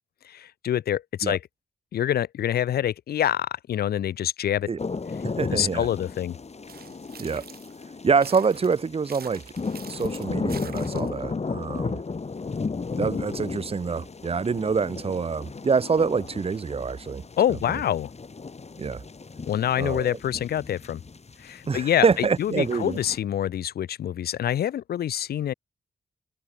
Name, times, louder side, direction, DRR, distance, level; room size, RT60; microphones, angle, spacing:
voice 1, 0.2-1.4 1.9-4.7 5.4-6.4 17.4-18.1 19.5-21.0 21.4-25.5, left 10 dB, 80° left, 0.6 m, -26 dB
sound 1, 4.8-23.2, left 4 dB, 45° left, 1.5 m, -35 dB
voice 2, 5.4-5.9 7.2-7.4 8.0-9.4 9.9-12.0 13.0-17.2 18.8-19.0 19.8-20.1 21.7-23.0, right 5 dB, 40° right, 0.7 m, -25 dB
sound 2, 6.7-7.8 8.2-11.2, right 8 dB, 80° right, 2.0 m, -46 dB
supercardioid pair, 45°, 16 cm